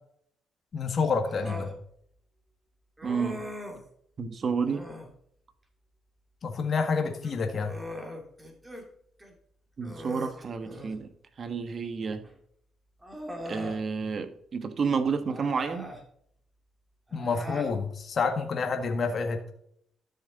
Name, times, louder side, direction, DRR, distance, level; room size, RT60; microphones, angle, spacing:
voice 1, 0.7-1.7 6.4-7.8 17.1-19.4, left 5 dB, 50° left, 1.6 m, -28 dB
Human voice, 1.2-1.8 3.0-3.9 4.6-5.1 7.1-8.9 9.2-9.3 9.8-11.0 12.2-12.3 13.0-13.8 15.2-16.0 17.1-17.8, equal, 10° right, 2.5 m, -40 dB
voice 2, 3.0-3.5 4.2-4.9 9.8-11.1 11.4-12.3 13.4-15.9, right 5 dB, 45° right, 1.2 m, -30 dB
12.5 x 6.7 x 4.0 m
cardioid pair, 90°, 0 cm